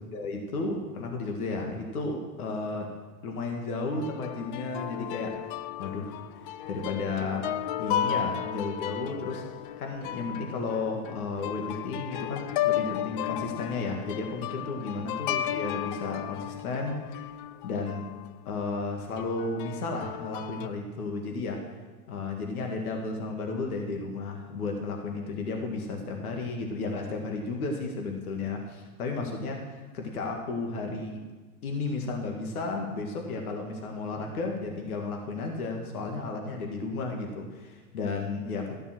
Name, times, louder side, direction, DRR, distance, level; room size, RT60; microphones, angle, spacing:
voice 1, 0.0-2.9 3.2-5.4 5.8-7.5 7.8-9.4 9.8-17.0 17.6-18.1 18.5-21.7 22.1-31.2 31.6-38.8, left 3 dB, 70° left, 2 dB, 2.1 m, -33 dB
sound 1, 3.9-18.3 19.2-20.7, left 11 dB, 35° left, 0.4 m, -34 dB
13.5 x 7.2 x 6.2 m, 1.3 s
hypercardioid pair, 105°, 46 cm